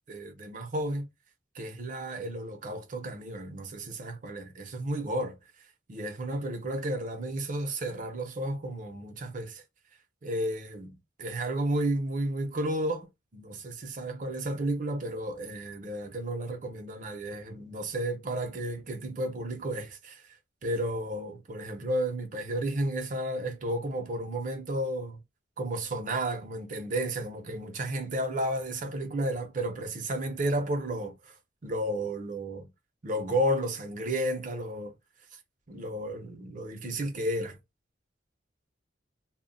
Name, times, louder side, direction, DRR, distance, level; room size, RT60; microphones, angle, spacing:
voice 1, 0.1-1.1 1.5-5.4 5.9-9.6 10.2-20.2 20.6-25.2 25.6-31.3 31.6-32.7 33.0-34.9 35.3-35.4 35.7-37.6, right 1 dB, 45° right, 0.6 m, -32 dB
2.1 x 2.1 x 3.8 m
head